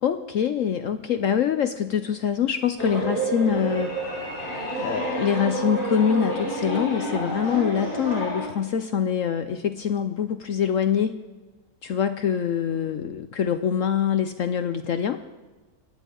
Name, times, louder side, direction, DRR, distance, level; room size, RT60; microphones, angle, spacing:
voice 1, 0.0-3.9 4.8-11.2 11.8-15.2, left 8 dB, 65° left, 9 dB, 0.8 m, -24 dB
sound 1, 2.8-8.5, right 1 dB, 45° left, 4.4 m, -29 dB
23.0 x 11.0 x 3.8 m, 1.3 s
omnidirectional pair, 1.9 m